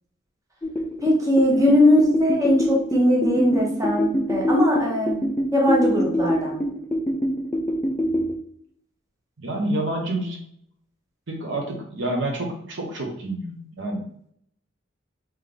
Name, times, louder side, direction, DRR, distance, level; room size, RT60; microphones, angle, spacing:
sound 1, 0.6-8.4, equal, 10° left, 0.4 m, -25 dB
voice 1, 1.0-5.2 5.5-6.6, left 1 dB, 15° right, -2 dB, 1.0 m, -20 dB
voice 2, 9.4-10.4 11.3-14.0, right 1 dB, 65° right, 1 dB, 0.9 m, -28 dB
3.8 x 3.1 x 3.3 m, 0.66 s
head